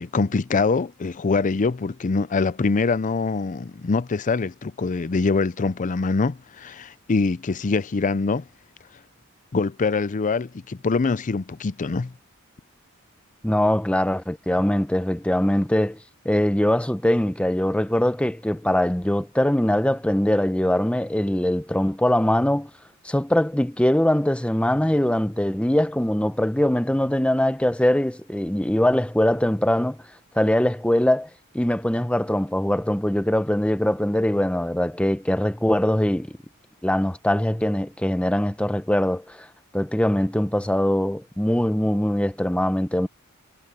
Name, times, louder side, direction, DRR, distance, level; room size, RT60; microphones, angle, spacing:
voice 1, 0.0-8.4 9.5-12.1, left 4 dB, 35° left, 0.5 m, -24 dB
voice 2, 13.4-16.0 16.2-22.7 23.0-30.0 30.3-31.3 31.5-36.3 36.8-39.5 39.7-43.1, left 1 dB, 5° left, 0.8 m, -22 dB
head